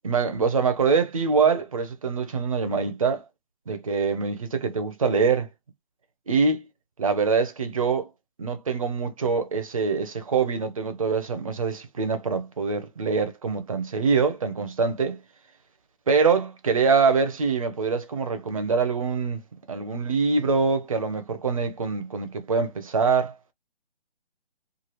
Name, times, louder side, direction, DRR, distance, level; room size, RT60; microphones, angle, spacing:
voice 1, 0.0-3.2 3.7-5.5 6.3-6.7 7.0-8.1 8.4-15.2 16.1-19.4 19.7-23.3, right 5 dB, 35° right, 0.4 m, -24 dB
3.0 x 2.3 x 2.9 m
hypercardioid pair, 155°, 33 cm